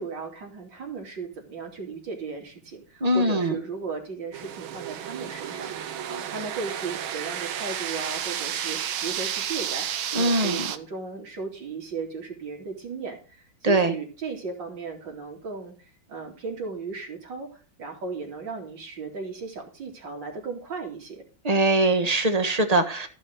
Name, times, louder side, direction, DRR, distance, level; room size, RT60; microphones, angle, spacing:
voice 1, 0.0-9.9 10.2-17.5 17.8-21.2, right 4 dB, 65° right, 0 dB, 3.5 m, -36 dB
voice 2, 3.0-3.6 10.1-10.7 13.6-13.9 21.4-23.1, right 2 dB, 20° right, 7 dB, 1.3 m, -22 dB
sound 1, 4.3-10.8, right 9 dB, 85° right, 1.7 m, -32 dB
15.0 x 5.6 x 6.5 m, 0.37 s
omnidirectional pair, 2.2 m